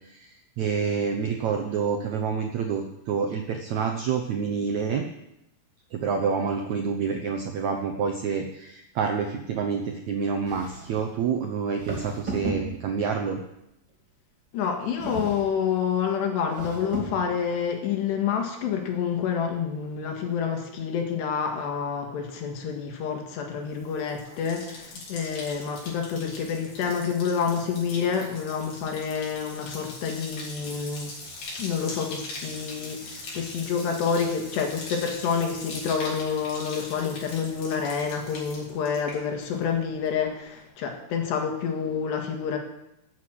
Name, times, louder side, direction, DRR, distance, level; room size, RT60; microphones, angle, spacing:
voice 1, 0.6-5.0 5.9-13.4, right 6 dB, 80° right, 3 dB, 1.6 m, -28 dB
sound 1, 10.5-11.1 11.8-13.1 15.0-15.7 16.4-17.3, right 2 dB, 30° right, 2.3 m, -35 dB
voice 2, 14.5-31.1 31.6-42.6, left 6 dB, 90° left, 3 dB, 4.0 m, -28 dB
Bathtub (filling or washing), 23.7-39.8 40.1-40.6, left 2 dB, 55° left, 4.8 m, -41 dB
14.0 x 8.3 x 7.9 m, 0.86 s
omnidirectional pair, 4.7 m